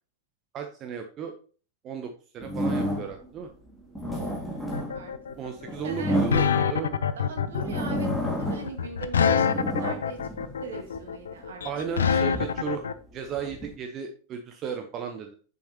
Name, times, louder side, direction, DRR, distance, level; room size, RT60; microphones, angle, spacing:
voice 1, 0.5-1.3 1.8-3.5 5.4-6.9 11.6-12.8 13.1-15.3, right 7 dB, 30° right, 5 dB, 0.8 m, -35 dB
sound 1, 2.4-3.3 3.8-7.0 7.5-8.8 9.1-11.0 11.6-13.7, equal, ahead, 2.6 m, -31 dB
voice 2, 4.1-4.4 4.7-5.1 5.8-6.2 7.2-8.1 8.4-10.3 10.6-11.6 12.2-12.3, right 4 dB, 65° right, 2 dB, 2.2 m, -40 dB
sound 2, 4.7-12.9, left 7 dB, 65° left, 0.5 m, -25 dB
8.1 x 6.6 x 2.9 m, 0.40 s
figure-of-eight pair, 90°, 0 cm